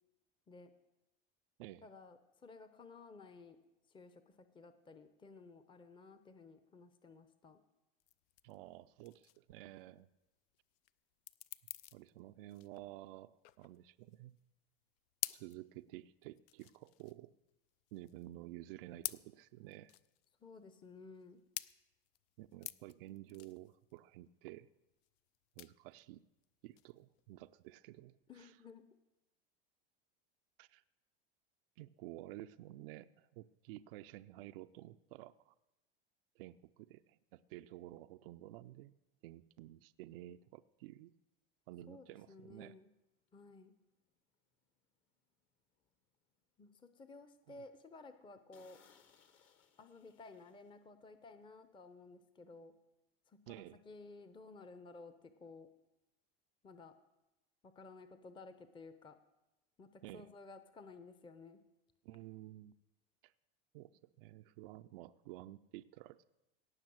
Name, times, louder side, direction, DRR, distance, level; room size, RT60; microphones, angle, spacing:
voice 1, 1.8-3.6 3.9-7.6 20.4-21.4 28.3-28.8 41.9-42.9 43.3-43.7 46.6-48.8 49.8-52.7 53.3-55.7 56.6-57.0 57.6-59.2 59.8-61.6, left 3 dB, 15° left, 10 dB, 0.7 m, -55 dB
sound 1, 8.0-27.8, left 15 dB, 55° left, 0.5 m, -50 dB
voice 2, 8.4-10.1 11.9-14.4 15.3-17.3 17.9-19.9 22.4-24.7 25.6-26.2 26.6-28.5 30.6-30.8 31.8-35.5 36.4-38.9 39.2-41.1 41.7-42.7 47.5-47.6 53.5-53.8 60.0-60.3 62.0-62.8 63.2-63.3 63.7-66.2, right 15 dB, 65° right, 12 dB, 0.5 m, -52 dB
sound 2, 43.3-43.4 43.9-44.2 44.7-44.8 45.1-45.2 45.7-46.3 46.7-46.8 47.2-47.3 47.6-47.7 48.1-48.2 48.5-51.1 51.3-51.5, left 7 dB, 40° left, 1.3 m, -68 dB
17.5 x 5.9 x 6.2 m, 0.97 s
hypercardioid pair, 95°, 30 cm